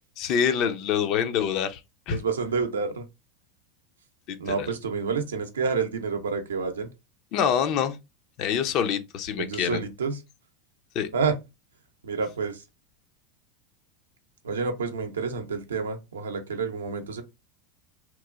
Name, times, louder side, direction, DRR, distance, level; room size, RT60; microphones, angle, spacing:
voice 1, 0.2-1.8 2.1-2.2 4.3-4.7 7.3-8.0 8.4-9.8 10.9-11.1, left 8 dB, 55° left, 0.5 m, -26 dB
voice 2, 2.1-3.0 4.4-6.9 9.4-10.2 11.1-11.4 12.0-12.6 14.4-17.2, right 5 dB, 90° right, 0.5 m, -29 dB
2.9 x 2.1 x 2.3 m
hypercardioid pair, 95°, 0 cm